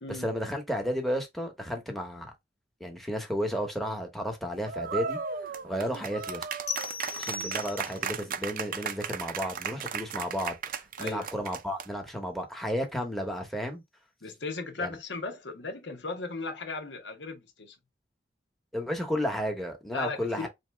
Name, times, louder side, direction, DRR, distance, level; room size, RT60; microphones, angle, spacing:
voice 1, 0.1-2.3 2.8-5.2 5.6-6.5 7.2-10.6 11.0-13.8 14.8-14.9 18.7-20.5, equal, ahead, 1.0 m, -32 dB
sound 1, 4.7-12.1, right 6 dB, 50° right, 0.5 m, -35 dB
sound 2, 6.7-8.2, left 5 dB, 40° left, 0.9 m, -37 dB
voice 2, 11.0-11.3 14.2-17.8 19.9-20.5, left 3 dB, 80° left, 1.0 m, -36 dB
4.1 x 2.8 x 3.4 m
head